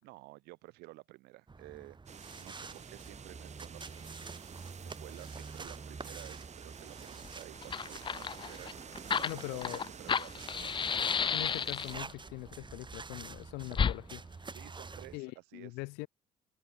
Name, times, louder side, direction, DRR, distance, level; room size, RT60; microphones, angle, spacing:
voice 1, 0.0-11.2 14.5-15.8, right 21 dB, 75° right, 4.2 m, -53 dB
sound 1, 1.5-15.2, right 4 dB, 30° right, 3.1 m, -48 dB
sound 2, 2.1-12.0, right 7 dB, 45° right, 1.9 m, -50 dB
Fire, 7.2-7.3 7.6-12.1 13.7-14.0, left 6 dB, 30° left, 0.5 m, -32 dB
voice 2, 9.2-9.8 11.3-14.2 15.1-16.1, left 27 dB, 80° left, 1.6 m, -42 dB
hypercardioid pair, 60°, 17 cm